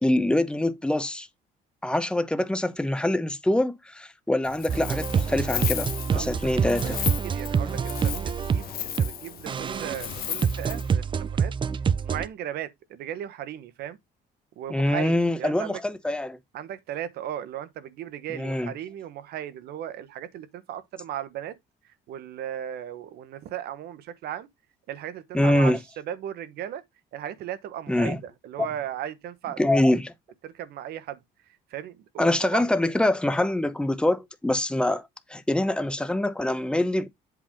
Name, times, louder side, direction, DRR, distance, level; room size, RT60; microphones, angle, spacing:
voice 1, 0.0-1.3 1.8-7.0 14.7-16.4 18.3-18.7 25.3-25.8 27.9-28.2 28.6-28.7 29.6-30.1 32.2-37.1, left 1 dB, 5° left, 0.9 m, -24 dB
Wind, 4.4-10.9, left 12 dB, 60° left, 0.9 m, -35 dB
sound 1, 4.7-9.1 9.5-12.3, right 6 dB, 30° right, 0.5 m, -26 dB
voice 2, 6.0-6.6 7.2-11.5 12.0-14.0 14.6-15.8 16.5-21.6 21.8-24.5 24.9-26.8 27.1-29.6 30.4-31.2 31.7-32.7, right 11 dB, 70° right, 1.1 m, -36 dB
8.0 x 3.6 x 5.1 m
cardioid pair, 110°, 17 cm